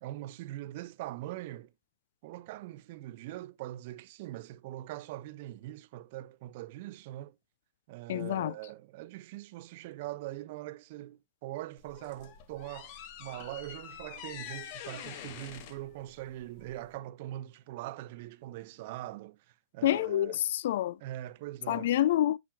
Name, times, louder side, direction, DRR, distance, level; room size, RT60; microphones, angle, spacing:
voice 1, 0.0-1.7 2.2-7.4 7.9-20.4 21.0-21.9, right 15 dB, 50° right, 0.5 m, -42 dB
voice 2, 8.1-8.5 19.8-21.0 21.7-22.4, left 13 dB, 65° left, 0.3 m, -27 dB
sound 1, 11.8-17.0, left 10 dB, 45° left, 0.9 m, -46 dB
7.4 x 5.9 x 2.2 m
hypercardioid pair, 150°, 0 cm